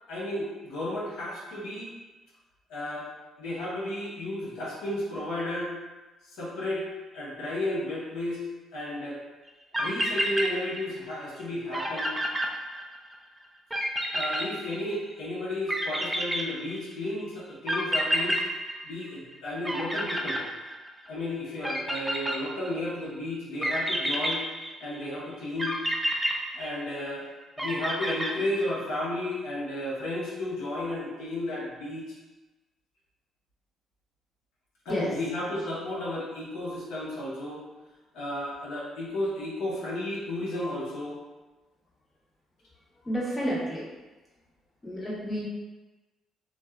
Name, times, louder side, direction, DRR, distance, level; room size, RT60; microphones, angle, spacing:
voice 1, 0.1-1.9 2.7-3.1 3.4-5.7 6.2-6.8 7.1-8.4 8.7-9.2 9.8-12.1 14.1-18.4 18.8-20.4 21.1-24.4 24.8-25.8 26.5-27.3 27.6-32.0 34.8-37.6 38.1-41.2, left 1 dB, 75° left, -7 dB, 0.7 m, -33 dB
sound 1, 9.5-9.6 9.7-11.1 11.4-11.5 11.7-13.1 13.7-15.1 15.7-17.0 17.7-19.3 19.6-21.1 21.6-22.9 23.6-25.0 25.6-27.1 27.6-28.8, equal, 15° right, 0.4 m, -29 dB
voice 2, 43.0-43.9 44.8-45.5, equal, 20° left, -5 dB, 0.8 m, -30 dB
2.6 x 2.3 x 2.2 m, 1.2 s
supercardioid pair, 60°, 0 cm